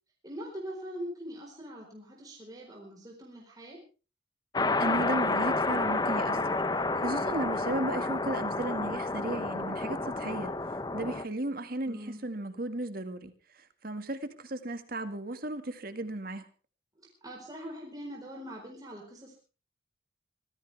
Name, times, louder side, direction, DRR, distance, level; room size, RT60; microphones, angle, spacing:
voice 1, 0.2-3.8 11.9-12.2 17.0-19.4, equal, 20° right, 4.4 m, -42 dB
sound 1, 4.5-11.2, left 3 dB, 20° left, 0.9 m, -30 dB
voice 2, 4.8-10.5 10.9-16.5, right 1 dB, 50° right, 1.9 m, -35 dB
25.0 x 15.0 x 3.5 m
head